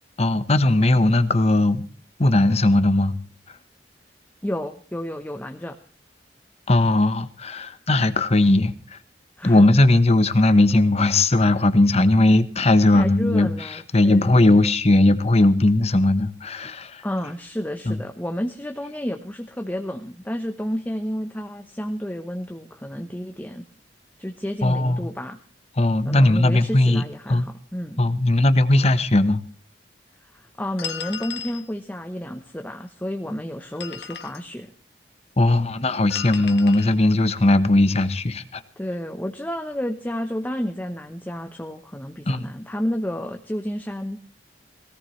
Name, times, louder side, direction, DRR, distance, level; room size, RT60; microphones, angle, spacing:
voice 1, 0.2-1.9 2.2-3.2 6.7-9.0 9.4-13.5 13.9-17.0 17.9-18.0 24.6-25.0 25.8-27.0 27.3-27.5 28.0-29.4 35.4-38.6 42.3-42.5, left 2 dB, 35° left, 12 dB, 1.0 m, -18 dB
voice 2, 4.4-5.7 9.4-9.7 12.9-14.6 17.0-23.6 24.2-25.4 26.0-28.0 30.2-34.7 38.8-44.2, equal, 10° left, 5 dB, 0.9 m, -31 dB
sound 1, 30.8-31.6 33.6-34.4 36.1-36.9, left 8 dB, 70° left, 1.5 m, -35 dB
20.5 x 18.0 x 3.2 m, 0.40 s
head